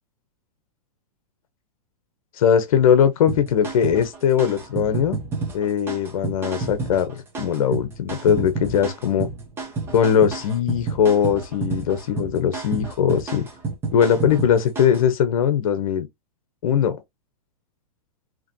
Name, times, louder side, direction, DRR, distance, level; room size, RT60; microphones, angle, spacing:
voice 1, 2.3-5.2 5.5-9.3 9.9-13.5 13.9-16.1 16.6-17.0, left 8 dB, 60° left, 1.0 m, -20 dB
sound 1, 3.3-15.1, right 4 dB, 10° right, 1.0 m, -30 dB
4.9 x 3.0 x 2.9 m
supercardioid pair, 160°, 20 cm